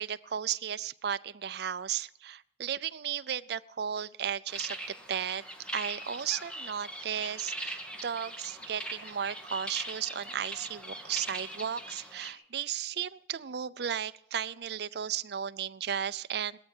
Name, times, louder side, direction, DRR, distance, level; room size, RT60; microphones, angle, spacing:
voice 1, 0.0-5.4 5.7-16.6, right 8 dB, 65° right, 13 dB, 0.5 m, -35 dB
sound 1, 4.5-12.3, right 1 dB, 5° left, 1.8 m, -41 dB
17.5 x 13.5 x 4.5 m, 0.69 s
head